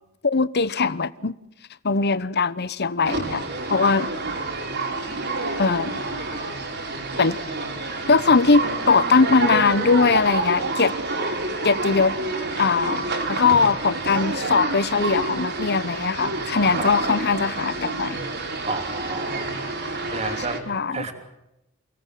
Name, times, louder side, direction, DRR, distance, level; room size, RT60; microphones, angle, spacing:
voice 1, 0.2-1.3 1.8-3.4 3.7-4.1 5.6-6.0 7.1-7.4 8.1-10.9 11.6-12.1 12.6-18.2 20.7-21.0, left 4 dB, 50° left, 17 dB, 1.0 m, -20 dB
sound 1, 3.0-20.6, right 3 dB, 55° right, 4.7 m, -28 dB
voice 2, 18.7-19.5 20.1-20.6 20.9-21.1, right 3 dB, 30° right, 5 dB, 3.1 m, -30 dB
28.5 x 18.5 x 7.6 m, 0.91 s
head